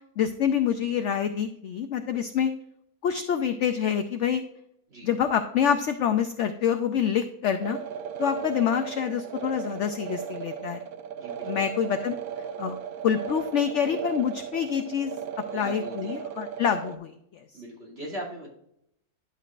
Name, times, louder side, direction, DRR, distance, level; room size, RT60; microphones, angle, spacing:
voice 1, 0.2-2.5 3.0-4.4 5.0-7.8 8.2-10.8 11.4-12.2 12.6-12.7 13.0-15.1 15.5-17.4, left 8 dB, 65° left, 7 dB, 0.7 m, -26 dB
sound 1, 7.6-17.0, right 8 dB, 70° right, 1.1 m, -36 dB
voice 2, 11.1-11.7 15.5-16.3 17.5-18.5, equal, 40° right, -5 dB, 2.9 m, -40 dB
11.0 x 6.6 x 2.5 m, 0.75 s
omnidirectional pair, 1.7 m